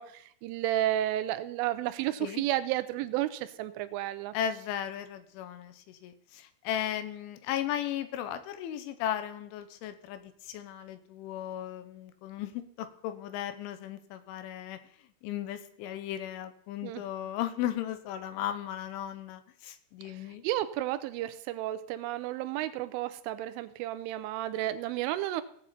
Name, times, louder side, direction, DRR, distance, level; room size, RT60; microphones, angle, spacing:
voice 1, 0.0-4.3 16.8-17.0 20.0-25.4, right 14 dB, 85° right, 13 dB, 3.2 m, -32 dB
voice 2, 4.3-14.8 15.2-20.4, left 11 dB, 80° left, 10 dB, 3.3 m, -36 dB
18.0 x 8.1 x 4.3 m, 0.64 s
omnidirectional pair, 5.6 m